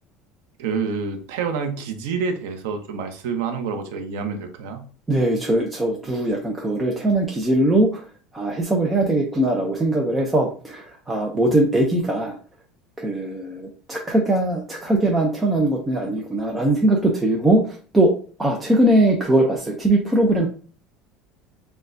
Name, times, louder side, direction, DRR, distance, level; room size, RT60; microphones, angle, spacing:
voice 1, 0.6-4.9, right 5 dB, 90° right, 6 dB, 0.8 m, -27 dB
voice 2, 5.1-8.0 8.3-12.3 13.0-20.5, right 1 dB, 10° right, -1 dB, 0.5 m, -21 dB
6.4 x 2.3 x 2.6 m, 0.41 s
cardioid pair, 170°, 0 cm